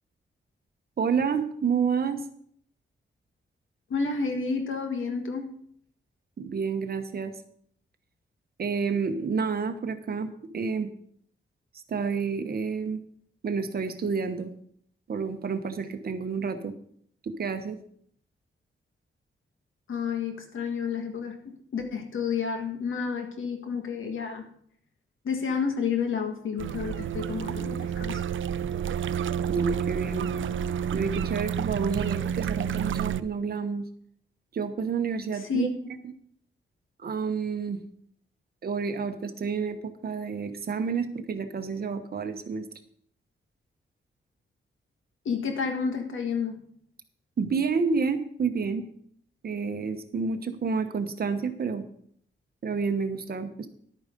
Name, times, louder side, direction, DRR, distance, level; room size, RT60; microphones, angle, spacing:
voice 1, 1.0-2.2 6.4-7.3 8.6-10.9 11.9-13.0 13.4-14.5 15.1-16.7 17.2-17.8 29.5-30.3 30.9-33.8 34.5-35.7 37.0-37.8 38.6-42.7 47.4-48.8 49.4-51.9 52.6-53.7, right 5 dB, 50° right, 8 dB, 1.1 m, -29 dB
voice 2, 3.9-5.6 19.9-24.4 25.2-28.2 35.3-35.7 45.2-46.6, left 5 dB, 90° left, 5 dB, 1.7 m, -30 dB
sound 1, 26.6-33.2, right 8 dB, 80° right, 0.5 m, -30 dB
11.0 x 8.9 x 5.2 m, 0.65 s
wide cardioid pair, 165°, 20 cm